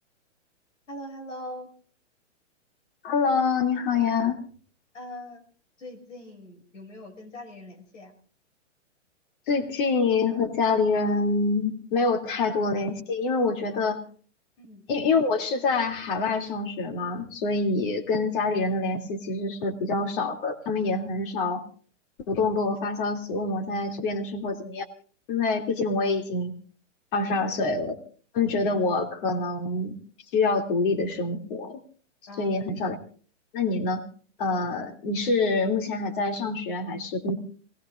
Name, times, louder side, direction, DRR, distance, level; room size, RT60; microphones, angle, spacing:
voice 1, 0.9-1.7 4.9-5.4 5.8-8.1 14.6-14.8 27.3-27.5 32.3-32.6, left 1 dB, 85° left, 5 dB, 6.8 m, -41 dB
voice 2, 3.0-4.4 9.5-14.0 14.9-21.6 22.3-24.9 25.3-26.5 27.1-27.9 28.3-29.9 30.3-31.8 32.4-33.0 33.5-34.0 34.4-37.3, left 3 dB, 45° left, 4 dB, 2.9 m, -26 dB
28.0 x 19.5 x 2.6 m, 0.43 s
hypercardioid pair, 160°, 37 cm